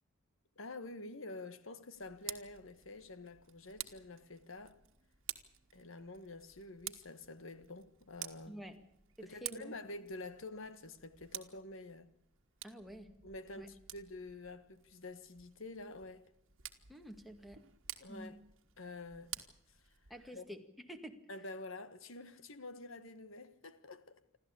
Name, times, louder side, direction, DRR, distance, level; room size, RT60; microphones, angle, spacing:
voice 1, 0.6-4.8 5.7-8.6 9.2-12.1 13.2-16.3 18.0-18.4 18.8-19.9 20.3-20.4 21.3-24.2, left 2 dB, 65° left, 1.6 m, -48 dB
Tick, 1.9-20.4, right 13 dB, 65° right, 1.6 m, -51 dB
voice 2, 8.5-8.8 9.2-9.9 12.6-13.1 13.6-13.7 16.9-17.6 18.1-18.3 20.1-20.6 20.9-21.2, right 1 dB, ahead, 2.0 m, -49 dB
27.5 x 13.0 x 8.4 m
head